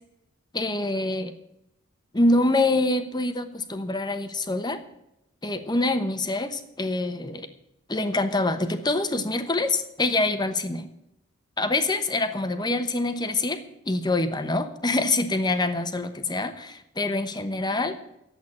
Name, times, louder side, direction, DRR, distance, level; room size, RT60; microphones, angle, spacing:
voice 1, 0.5-1.3 2.1-4.8 5.4-7.5 7.9-10.9 11.6-18.0, left 2 dB, 20° left, 9 dB, 1.0 m, -25 dB
10.5 x 8.2 x 9.6 m, 0.84 s
head